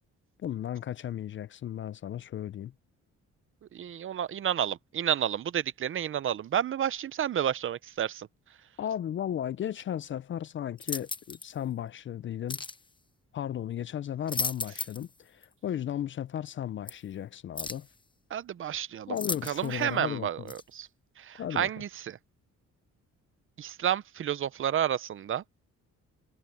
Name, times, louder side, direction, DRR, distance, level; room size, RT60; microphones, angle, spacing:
voice 1, 0.4-2.7 8.8-12.6 13.3-17.9 19.1-20.5 21.4-21.7, left 10 dB, 45° left, 0.4 m, -35 dB
voice 2, 3.7-8.3 18.3-19.1 19.4-20.9 21.2-22.2 23.6-25.4, right 10 dB, 45° right, 0.6 m, -30 dB
sound 1, 10.8-11.5 12.5-12.8 14.0-15.1 15.4-15.5 16.9-17.0 17.6-17.9 19.2-19.8 20.5-20.6, left 3 dB, 15° left, 1.0 m, -35 dB
cardioid pair, 155°, 29 cm